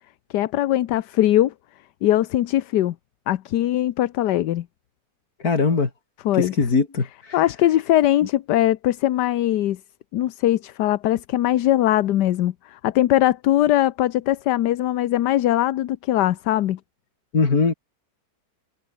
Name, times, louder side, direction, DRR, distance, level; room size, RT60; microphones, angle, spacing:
voice 1, 0.3-1.5 2.0-2.9 3.3-4.7 6.2-6.5 7.3-9.8 10.1-16.8, left 13 dB, 75° left, 1.3 m, -21 dB
voice 2, 5.4-5.9 6.3-7.4 17.3-17.7, left 4 dB, 55° left, 3.4 m, -21 dB
omnidirectional pair, 1.9 m